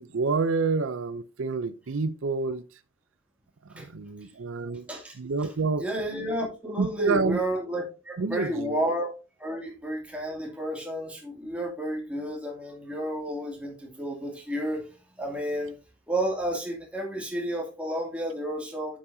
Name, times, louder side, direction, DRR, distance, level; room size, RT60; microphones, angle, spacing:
voice 1, 0.0-2.6 3.7-4.9 5.2-5.8 6.8-7.4 8.2-8.8, right 4 dB, 75° right, 0.5 m, -28 dB
voice 2, 4.7-5.1 5.8-9.1 9.4-14.9 15.2-15.7 16.1-19.0, right 1 dB, 5° right, 2.5 m, -31 dB
8.5 x 7.4 x 2.7 m
head